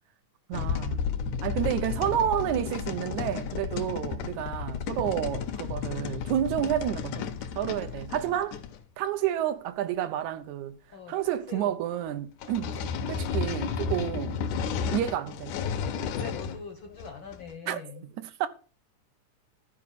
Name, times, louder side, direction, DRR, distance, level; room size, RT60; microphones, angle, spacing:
sound 1, 0.5-8.8 12.4-16.6 17.0-17.5, left 6 dB, 85° left, 2.5 m, -32 dB
voice 1, 0.5-1.0 1.4-8.6 9.0-10.8 11.1-12.8 13.1-14.5 14.9-15.5 17.7-18.5, right 11 dB, 75° right, 2.2 m, -30 dB
voice 2, 10.9-11.7 12.6-12.9 15.9-18.0, left 5 dB, 60° left, 1.3 m, -43 dB
13.0 x 5.0 x 7.1 m
omnidirectional pair, 3.5 m